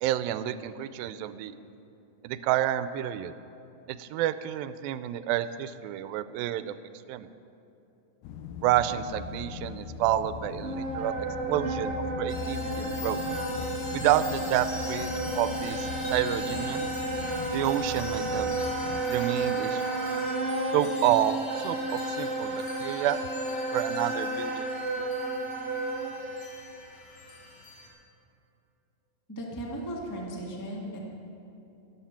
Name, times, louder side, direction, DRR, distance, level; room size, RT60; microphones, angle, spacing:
voice 1, 0.0-1.5 2.2-3.3 3.9-6.7 7.1-7.3 8.6-13.2 13.9-16.9 17.5-18.5 19.1-19.8 20.7-23.2 23.7-24.7 25.0-25.1, right 12 dB, 90° right, 13 dB, 2.3 m, -29 dB
sound 1, 8.2-19.0, left 7 dB, 90° left, 2.5 m, -40 dB
Wind instrument woodwind instrument, 10.6-26.1, right 2 dB, 65° right, 0.7 m, -32 dB
sound 2, 12.3-27.9, left 2 dB, 65° left, 3.6 m, -44 dB
voice 2, 29.3-31.0, right 1 dB, 20° left, -2 dB, 0.5 m, -36 dB
13.0 x 12.5 x 5.8 m, 2.9 s
omnidirectional pair, 4.1 m